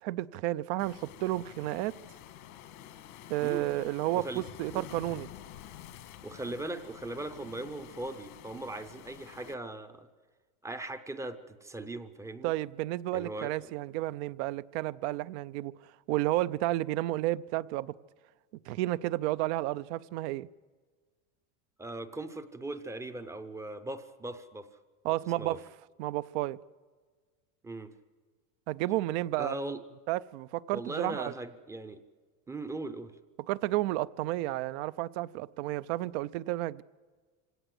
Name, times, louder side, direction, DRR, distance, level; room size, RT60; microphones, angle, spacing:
voice 1, 0.0-2.0 3.3-5.3 12.4-15.7 16.1-17.9 18.7-20.5 25.0-25.6 26.0-26.6 28.7-29.6 30.1-31.3 33.5-36.8, right 16 dB, 55° right, 0.6 m, -31 dB
Waves surf, 0.8-9.5, left 11 dB, 85° left, 2.0 m, -49 dB
voice 2, 6.2-10.1 10.6-12.5 13.1-13.5 21.8-24.7 25.1-25.6 27.6-27.9 29.4-29.8 30.7-32.0 32.5-33.1, right 2 dB, 5° right, 0.6 m, -39 dB
26.5 x 17.5 x 7.8 m
supercardioid pair, 165°, 41 cm